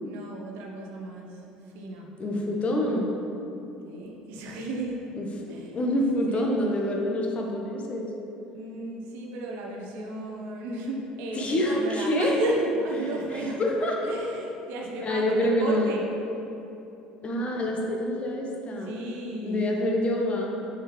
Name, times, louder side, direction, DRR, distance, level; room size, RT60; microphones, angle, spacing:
voice 1, 0.0-2.1 3.8-5.0 5.5-5.8 6.3-6.4 8.5-13.6 14.0-16.2 18.8-19.8, right 1 dB, 60° right, 0 dB, 0.8 m, -34 dB
voice 2, 2.2-3.1 5.2-5.3 5.7-8.1 11.3-12.4 13.3-14.0 15.0-15.9 17.2-18.9 19.4-20.7, left 1 dB, 30° left, 0 dB, 1.0 m, -26 dB
6.5 x 5.2 x 3.1 m, 2.9 s
figure-of-eight pair, 65°, 4 cm